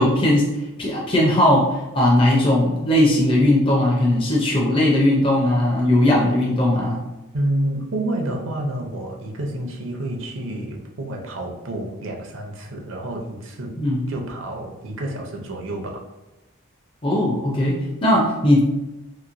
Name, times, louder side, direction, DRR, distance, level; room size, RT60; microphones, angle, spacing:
voice 1, 0.0-7.0 13.8-14.0 17.0-18.6, left 1 dB, 25° left, -3 dB, 0.5 m, -18 dB
voice 2, 7.3-13.7 14.1-16.0, right 1 dB, 60° right, 1 dB, 0.6 m, -29 dB
2.9 x 2.9 x 2.5 m, 0.98 s
head